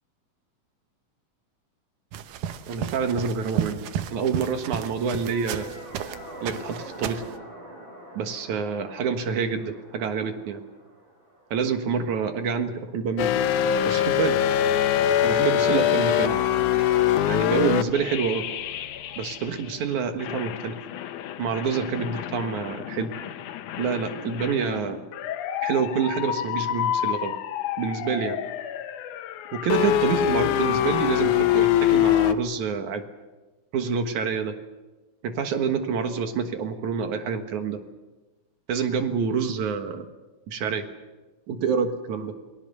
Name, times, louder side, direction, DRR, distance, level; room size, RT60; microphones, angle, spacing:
sound 1, 2.1-6.2 6.5-7.3, right 10 dB, 85° right, 2.6 m, -33 dB
voice 1, 2.7-3.8 4.1-5.7 6.4-7.2 8.2-10.6 11.5-13.3 13.8-14.4 15.2-16.4 17.3-18.5 19.2-20.8 21.4-23.1 23.8-25.0 25.6-27.4 27.8-28.4 29.5-33.0 33.7-34.5 35.2-37.8 38.7-40.1 40.5-40.8 41.5-42.3, right 6 dB, 70° right, 7 dB, 2.8 m, -27 dB
sound 2, 4.9-12.1 14.0-21.8, right 1 dB, 25° right, 5.9 m, -44 dB
sound 3, 13.2-19.7 20.2-32.3, left 11 dB, 75° left, 2.3 m, -25 dB
29.0 x 19.0 x 6.8 m, 1.2 s
omnidirectional pair, 3.7 m